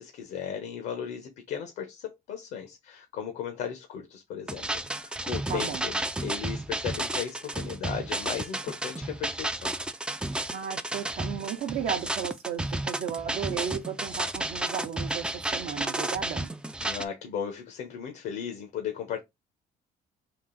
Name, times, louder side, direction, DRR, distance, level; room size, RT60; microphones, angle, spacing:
voice 1, 0.0-5.9 6.2-9.7 16.8-19.2, left 8 dB, 75° left, 1.0 m, -36 dB
sound 1, 4.5-17.0, right 1 dB, 5° right, 0.3 m, -32 dB
voice 2, 5.5-5.9 10.5-16.5, right 8 dB, 65° right, 0.7 m, -34 dB
3.7 x 2.5 x 3.7 m
cardioid pair, 110°, 17 cm